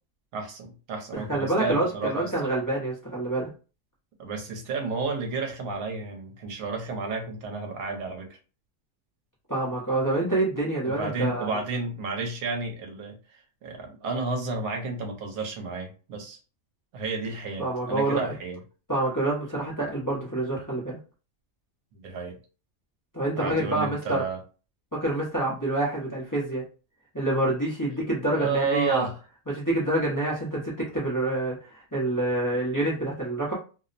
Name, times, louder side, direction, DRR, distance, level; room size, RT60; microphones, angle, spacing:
voice 1, 0.3-2.5 4.2-8.4 10.8-13.1 13.6-16.4 16.9-18.6 21.9-22.3 23.4-24.4 28.3-29.1, right 4 dB, 70° right, 2 dB, 1.1 m, -31 dB
voice 2, 1.1-3.5 9.5-11.6 17.6-18.3 18.9-21.0 23.1-24.2 24.9-26.6 27.1-29.1 29.5-33.5, right 2 dB, 20° left, -6 dB, 0.5 m, -27 dB
2.7 x 2.0 x 2.5 m, 0.35 s
omnidirectional pair, 1.5 m